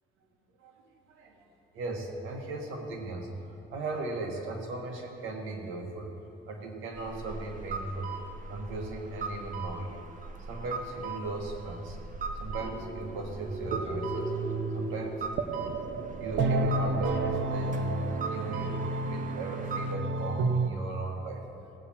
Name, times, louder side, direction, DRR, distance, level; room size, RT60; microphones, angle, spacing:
voice 1, 0.6-1.5 1.7-3.3 3.7-6.1 6.5-8.1 8.5-10.1 10.5-12.0 12.3-14.3 14.7-15.3 16.2-21.4, right 2 dB, 85° right, 2 dB, 1.8 m, -37 dB
sound 1, 6.9-19.9, right 4 dB, 40° right, 1.1 m, -40 dB
sound 2, 12.5-16.3, right 1 dB, 20° left, 2.1 m, -39 dB
sound 3, 12.6-20.7, right 3 dB, 70° right, 0.9 m, -31 dB
18.0 x 8.6 x 4.4 m, 2.9 s
cardioid pair, 90°, 20 cm